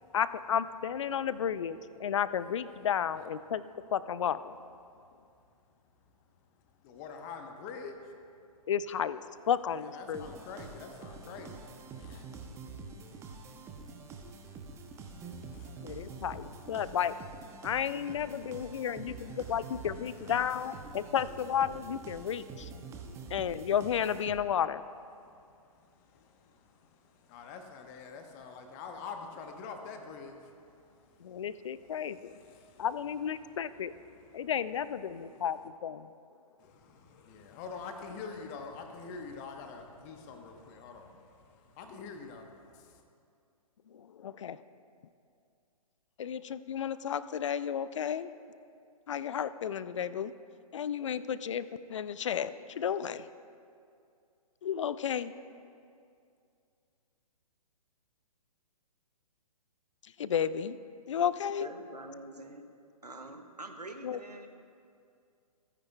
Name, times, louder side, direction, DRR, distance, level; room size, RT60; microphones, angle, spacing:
voice 1, 0.1-3.6 3.9-4.6 8.7-9.2 9.5-10.3 15.8-17.1 17.6-22.7 23.3-24.8 31.2-32.4 32.8-33.9 34.3-36.1 43.9-44.6 46.2-48.3 49.1-50.3 50.7-53.3 54.6-55.3 60.2-60.8 61.1-61.7 64.0-64.2, left 8 dB, 50° left, 15 dB, 0.5 m, -32 dB
voice 2, 6.8-8.2 9.8-16.2 16.8-16.9 17.6-17.7 18.4-20.3 20.9-21.1 22.8-23.3 25.2-32.9 33.4-33.6 34.1-34.5 35.3-35.4 36.6-43.0, left 5 dB, 25° left, 5 dB, 1.1 m, -48 dB
sound 1, 10.1-24.7, right 4 dB, 15° right, 0.8 m, -46 dB
voice 3, 61.6-62.6 63.0-64.5, right 2 dB, 90° right, 5 dB, 1.2 m, -45 dB
27.0 x 9.8 x 2.3 m, 2.4 s
figure-of-eight pair, 125°, 20 cm